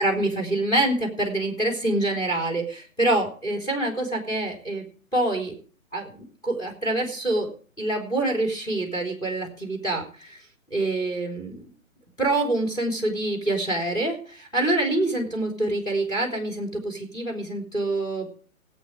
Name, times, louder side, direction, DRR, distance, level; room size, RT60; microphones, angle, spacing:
voice 1, 0.0-4.8 5.1-5.6 5.9-7.5 7.8-10.4 10.7-11.7 12.2-18.3, right 2 dB, 10° left, 3 dB, 3.6 m, -26 dB
18.0 x 8.5 x 4.8 m, 0.42 s
figure-of-eight pair, 135°, 42 cm